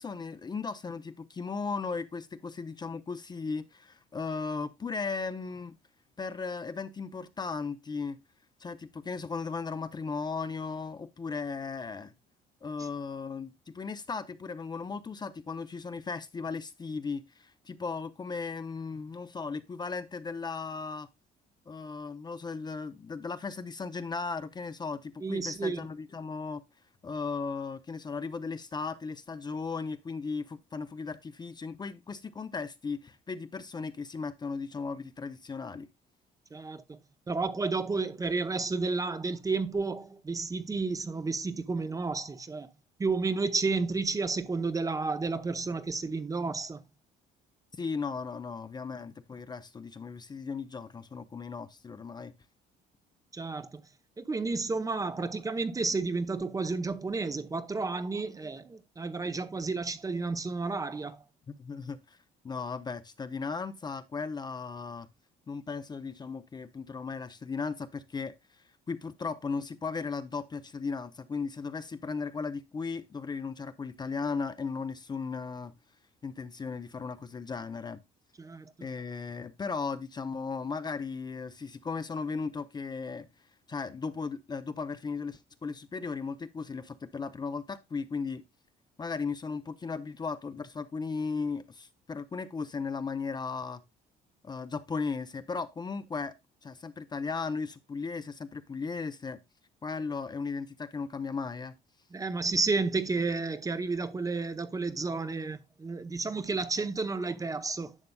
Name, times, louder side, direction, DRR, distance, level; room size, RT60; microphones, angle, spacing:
voice 1, 0.0-5.7 6.2-8.2 8.6-12.1 12.6-21.1 21.7-26.6 27.0-35.9 47.7-52.3 61.5-62.2 62.4-65.1 65.5-75.7 76.2-78.0 78.8-83.3 83.7-88.4 89.0-93.8 94.4-96.3 96.6-99.4 99.8-101.7, left 4 dB, 25° left, 0.6 m, -36 dB
voice 2, 25.2-25.9 36.5-37.0 37.3-42.7 43.0-46.8 53.3-53.8 54.2-61.2 78.4-78.7 102.1-108.0, right 3 dB, 20° right, 0.7 m, -31 dB
11.0 x 6.7 x 2.2 m
cardioid pair, 110°, 17 cm